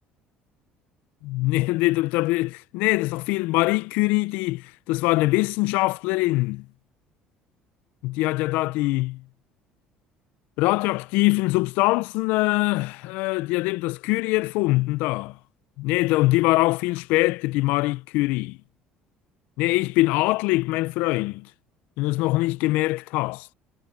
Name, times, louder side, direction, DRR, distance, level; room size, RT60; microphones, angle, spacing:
voice 1, 1.2-6.7 8.0-9.2 10.6-15.4 15.8-18.6 19.6-21.5 22.0-23.5, left 21 dB, 80° left, 0.4 m, -23 dB
cardioid pair, 150°, 3 cm